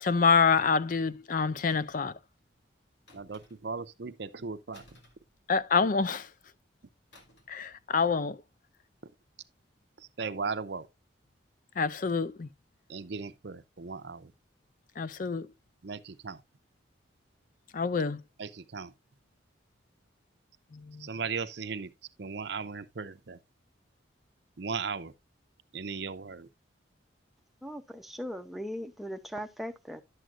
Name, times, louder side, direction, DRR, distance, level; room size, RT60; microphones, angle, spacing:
voice 1, 0.0-2.2 5.5-6.3 7.5-8.4 11.8-12.5 15.0-15.5 17.7-18.2 20.7-21.1, left 5 dB, 45° left, 0.4 m, -27 dB
sound 1, 1.7-2.1 3.1-3.8 4.7-5.9 7.1-7.6 7.9-8.1, left 1 dB, 65° left, 2.4 m, -58 dB
voice 2, 3.1-4.8 9.0-9.1 10.0-10.9 12.9-14.3 15.8-16.4 18.4-18.9 21.0-21.9 22.2-23.4 24.6-25.1 25.7-26.5, right 5 dB, 60° right, 0.6 m, -37 dB
voice 3, 27.6-30.0, equal, ahead, 0.7 m, -39 dB
11.5 x 7.6 x 2.5 m
head